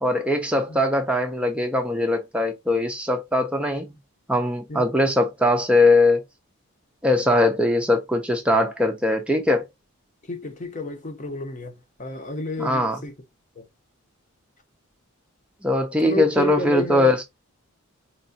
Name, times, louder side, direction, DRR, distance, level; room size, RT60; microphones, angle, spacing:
voice 1, 0.0-4.0 4.3-6.2 7.0-9.6 12.6-13.0 15.6-17.2, left 1 dB, 5° right, 0.5 m, -21 dB
voice 2, 10.8-11.7 12.0-12.7 16.0-17.1, left 2 dB, 35° left, 0.8 m, -29 dB
4.5 x 3.0 x 2.7 m
head